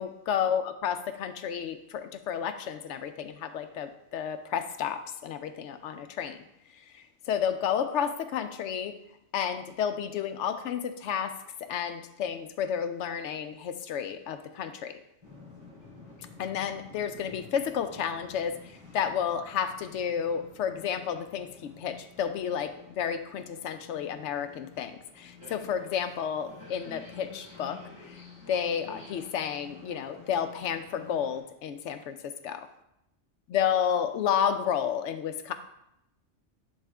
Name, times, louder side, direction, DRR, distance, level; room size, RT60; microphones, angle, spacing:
voice 1, 0.0-6.4 7.3-9.0 9.3-11.3 11.6-14.9 16.4-18.6 18.9-21.5 21.8-27.8 28.5-32.2 32.4-32.6 33.5-35.5, left 8 dB, 80° left, 9 dB, 0.9 m, -31 dB
sound 1, 15.2-31.4, left 4 dB, 25° left, 2.4 m, -50 dB
10.5 x 3.6 x 3.4 m, 0.82 s
omnidirectional pair, 1.2 m